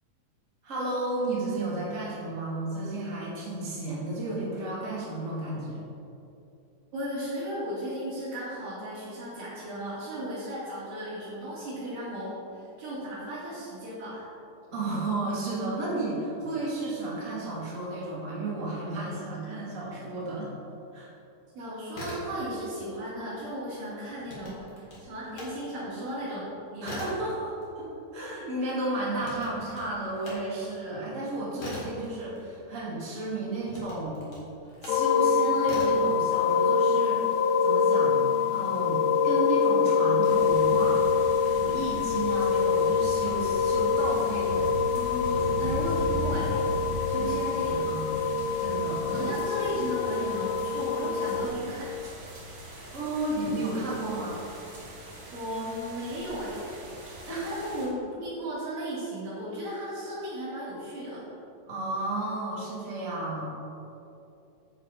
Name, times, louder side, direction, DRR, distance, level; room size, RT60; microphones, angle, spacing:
voice 1, 0.6-5.8 14.7-20.5 20.9-21.1 26.8-34.2 34.8-38.2 38.5-41.0 41.5-44.7 45.3-45.7 47.1-47.3 47.6-48.1 48.6-49.3 52.9-54.4 57.2-57.6 61.7-63.4, right 2 dB, 25° right, -6 dB, 2.4 m, -33 dB
voice 2, 6.9-14.3 21.5-27.0 44.9-46.6 47.0-47.8 49.1-51.9 55.0-56.6 57.4-61.3, equal, 85° right, -11 dB, 4.4 m, -35 dB
sound 1, 21.8-22.8 23.1-25.5 25.9-33.0 33.6-35.1 35.6-36.1, left 1 dB, 45° left, 3.0 m, -42 dB
sound 2, 34.9-51.5, left 5 dB, 80° left, 1.8 m, -25 dB
sound 3, 40.2-57.9, equal, 65° right, 4.4 m, -39 dB
10.5 x 7.8 x 4.9 m, 2.7 s
omnidirectional pair, 3.9 m